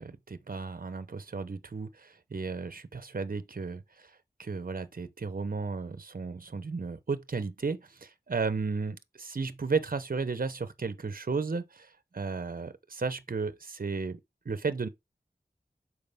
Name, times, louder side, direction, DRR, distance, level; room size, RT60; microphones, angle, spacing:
voice 1, 0.0-3.8 4.4-14.2 14.4-14.9, right 4 dB, 60° right, 0.9 m, -34 dB
6.6 x 4.9 x 3.5 m
wide cardioid pair, 65°, 17 cm